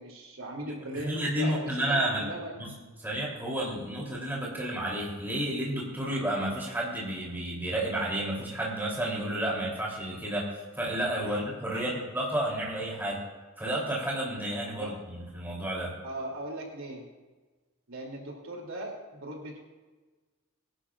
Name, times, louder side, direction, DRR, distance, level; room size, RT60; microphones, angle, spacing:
voice 1, 0.0-2.5 11.2-11.4 11.7-12.0 14.7-14.9 16.0-17.1 17.9-19.6, right 1 dB, 70° right, 0 dB, 3.0 m, -39 dB
voice 2, 0.6-2.2 2.5-2.7 3.0-13.2 13.6-15.9, right 1 dB, 10° right, -5 dB, 3.3 m, -31 dB
23.0 x 11.5 x 2.5 m, 1.3 s
head